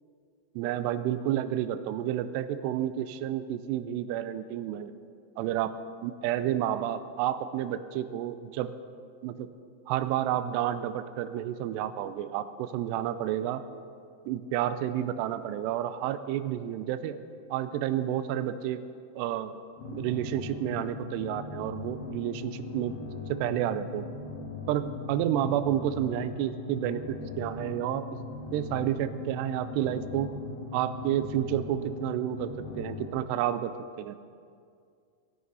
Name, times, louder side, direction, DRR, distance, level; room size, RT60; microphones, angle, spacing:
voice 1, 0.6-4.9 5.4-5.8 6.0-8.7 9.2-9.5 9.9-13.6 14.3-17.2 17.5-18.8 19.2-19.6 19.9-23.0 23.3-24.1 24.7-28.1 28.5-30.3 30.7-32.5 32.8-34.2, right 11 dB, 85° right, 11 dB, 2.5 m, -30 dB
sound 1, 19.8-33.1, left 3 dB, 55° left, 3.0 m, -40 dB
18.0 x 15.0 x 4.1 m, 2.3 s
omnidirectional pair, 5.4 m